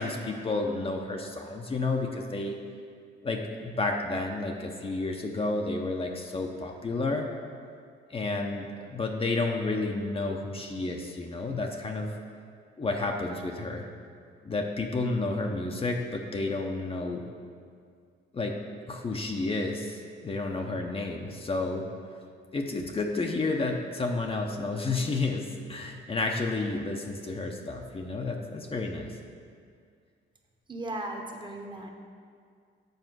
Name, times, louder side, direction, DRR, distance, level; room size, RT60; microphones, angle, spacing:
voice 1, 0.0-2.6 3.2-7.3 8.1-12.1 12.8-13.9 14.4-17.2 18.3-18.6 18.9-21.8 22.5-29.1, left 3 dB, 30° left, 2 dB, 0.7 m, -31 dB
voice 2, 30.7-31.9, right 1 dB, 25° right, 2 dB, 1.0 m, -36 dB
7.9 x 4.3 x 6.1 m, 2.2 s
cardioid pair, 90°, 20 cm